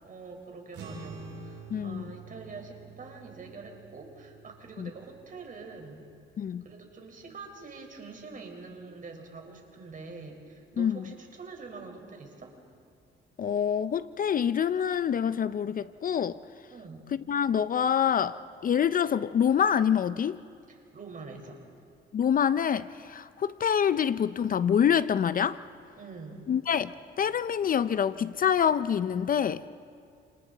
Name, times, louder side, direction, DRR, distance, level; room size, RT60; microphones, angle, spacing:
voice 1, 0.0-6.1 6.6-12.6 16.7-17.1 20.7-21.6 26.0-26.5, right 4 dB, 45° right, 4.6 m, -45 dB
sound 1, 0.7-7.4, right 4 dB, 70° right, 4.7 m, -48 dB
voice 2, 1.7-2.0 4.8-4.9 6.4-6.6 10.8-11.0 13.4-16.4 17.1-20.4 22.1-25.6 26.5-29.7, left 8 dB, 45° left, 0.5 m, -26 dB
29.0 x 28.5 x 4.0 m
cardioid pair, 90°, 20 cm